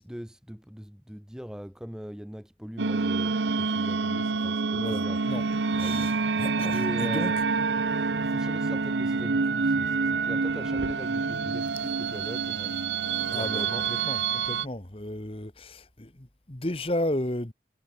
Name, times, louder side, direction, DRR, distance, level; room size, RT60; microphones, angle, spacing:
voice 1, 0.0-5.2 5.7-7.4 8.0-12.8 13.3-13.9, equal, 5° right, 0.8 m, -41 dB
sound 1, 2.8-14.6, right 4 dB, 85° right, 0.8 m, -27 dB
voice 2, 4.7-5.5 5.8-7.3 13.3-17.5, left 1 dB, 30° left, 1.6 m, -33 dB
sound 2, 5.3-11.8, right 1 dB, 60° right, 1.6 m, -42 dB
head